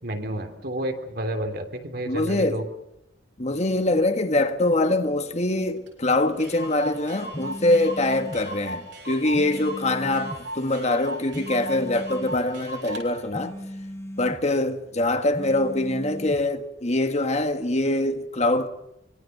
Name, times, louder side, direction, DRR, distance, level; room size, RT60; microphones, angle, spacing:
voice 1, 0.0-2.7, right 1 dB, 55° right, 3.3 m, -30 dB
voice 2, 2.1-2.6 3.4-13.5 14.2-18.7, left 2 dB, 35° left, 1.6 m, -24 dB
Clock, 5.9-6.0 6.1-6.2 6.4-13.1, right 1 dB, 75° right, 7.0 m, -37 dB
sound 1, 7.3-8.4 9.3-10.4 11.3-12.4 13.3-14.4 15.3-16.4, equal, 15° left, 1.3 m, -37 dB
25.0 x 23.5 x 6.7 m
head